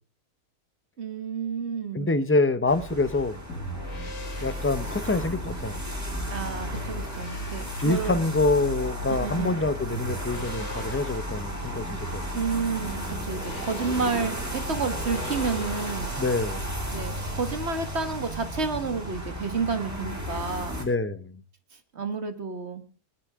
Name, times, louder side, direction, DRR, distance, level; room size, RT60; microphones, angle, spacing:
voice 1, 1.0-2.1 6.3-8.2 9.1-9.6 12.3-16.1 16.9-20.8 21.9-22.8, right 5 dB, 45° right, 1.9 m, -30 dB
voice 2, 1.9-3.4 4.4-5.8 7.8-12.2 16.2-16.7 20.8-21.3, left 3 dB, 15° left, 0.5 m, -26 dB
sound 1, 2.7-20.8, right 1 dB, 10° right, 3.8 m, -35 dB
sound 2, 3.5-16.3, left 1 dB, 80° left, 2.4 m, -37 dB
21.5 x 11.5 x 3.6 m
omnidirectional pair, 1.5 m